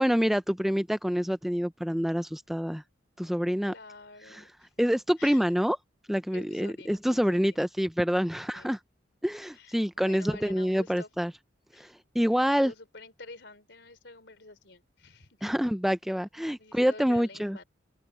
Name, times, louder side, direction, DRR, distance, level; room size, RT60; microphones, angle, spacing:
voice 1, 0.0-2.8 3.2-3.7 4.3-4.4 4.8-5.8 6.1-8.8 9.2-11.3 11.8-12.7 15.4-17.6, equal, ahead, 0.4 m, -27 dB
voice 2, 3.6-4.7 5.2-5.4 6.3-7.6 8.4-8.7 9.5-11.1 11.7-11.9 12.6-15.4 16.6-17.6, left 3 dB, 70° left, 3.6 m, -48 dB
open air
head